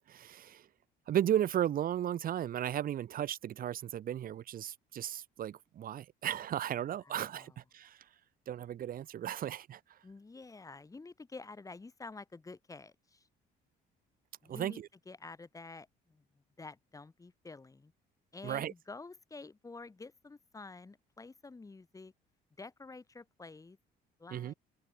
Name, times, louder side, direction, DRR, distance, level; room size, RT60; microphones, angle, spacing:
voice 1, 0.1-0.7 1.1-8.1 8.5-10.0 14.5-14.9 18.4-18.7 24.3-24.5, right 11 dB, 55° right, 3.4 m, -35 dB
voice 2, 7.0-7.5 10.0-13.3 14.4-16.2 16.6-17.9 18.3-22.1 22.6-23.8 24.2-24.5, left 3 dB, 20° left, 4.6 m, -49 dB
cardioid pair, 110°, 17 cm